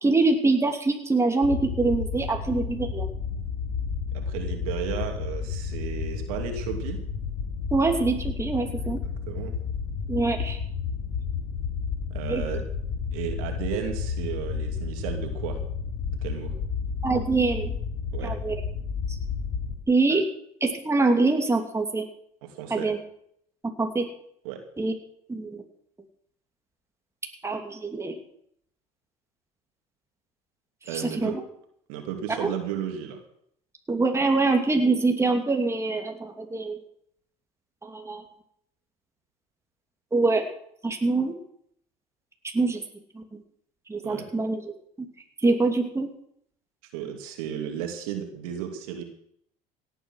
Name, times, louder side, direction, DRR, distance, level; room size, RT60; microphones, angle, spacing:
voice 1, 0.0-3.1 7.7-9.0 10.1-10.6 12.3-12.4 17.0-17.7 18.2-18.5 19.9-20.2 20.6-22.0 22.7-23.0 23.8-24.1 24.8-24.9 25.3-25.5 27.4-28.2 30.9-31.3 32.3-32.5 33.9-36.8 37.8-38.2 40.1-40.4 40.8-41.3 42.5-42.8 43.1-43.2 43.9-44.6 45.4-46.1, right 3 dB, 15° right, 3 dB, 2.7 m, -24 dB
sound 1, 1.4-19.8, left 6 dB, 60° left, 4.0 m, -31 dB
voice 2, 4.1-7.0 9.0-9.6 12.1-12.7 13.1-15.6 16.2-16.5 18.1-18.3 20.1-20.2 22.4-22.9 24.4-24.6 30.8-31.4 31.9-33.2 44.0-44.3 46.9-49.0, right 9 dB, 75° right, 4 dB, 2.7 m, -34 dB
17.0 x 8.9 x 6.5 m, 0.69 s
hypercardioid pair, 80°, 18 cm